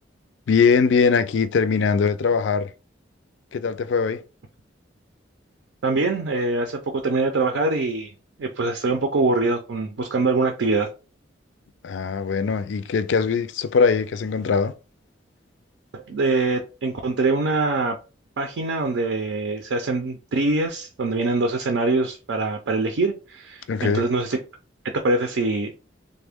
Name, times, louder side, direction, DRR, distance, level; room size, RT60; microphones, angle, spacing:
voice 1, 0.5-2.7 3.5-4.2 11.8-14.7 23.7-24.0, left 5 dB, 70° left, 0.4 m, -21 dB
voice 2, 5.8-8.1 8.4-10.9 15.9-18.0 18.4-24.4 25.0-25.7, right 3 dB, 80° right, 0.5 m, -23 dB
3.3 x 2.1 x 3.4 m
head